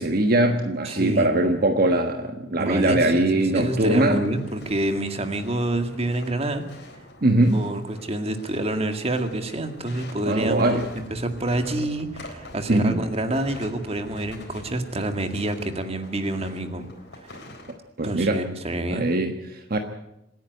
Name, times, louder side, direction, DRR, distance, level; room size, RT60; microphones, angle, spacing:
voice 1, 0.0-4.2 7.2-7.6 10.3-10.9 12.7-13.0 18.0-18.4 18.9-19.8, right 1 dB, 55° right, 6 dB, 1.4 m, -21 dB
voice 2, 0.8-1.3 2.6-6.6 7.5-16.9 17.2-17.4 18.0-19.1, right 1 dB, 35° right, 7 dB, 2.0 m, -27 dB
sound 1, 3.4-17.7, left 1 dB, 65° left, 4.1 m, -44 dB
26.5 x 10.5 x 9.5 m, 0.85 s
head